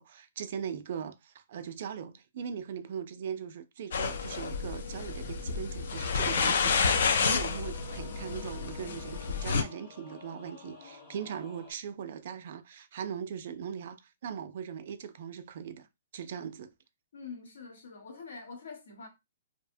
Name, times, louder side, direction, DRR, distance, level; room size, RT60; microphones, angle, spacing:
voice 1, 0.0-15.9 16.1-16.7, right 8 dB, 50° right, 0.3 m, -40 dB
sound 1, 3.9-9.6, left 5 dB, 65° left, 0.4 m, -30 dB
Singing / Musical instrument, 6.1-11.7, left 3 dB, 20° left, 0.8 m, -50 dB
voice 2, 17.1-19.1, left 4 dB, 80° left, 1.1 m, -45 dB
2.7 x 2.0 x 2.6 m
hypercardioid pair, 165°, 0 cm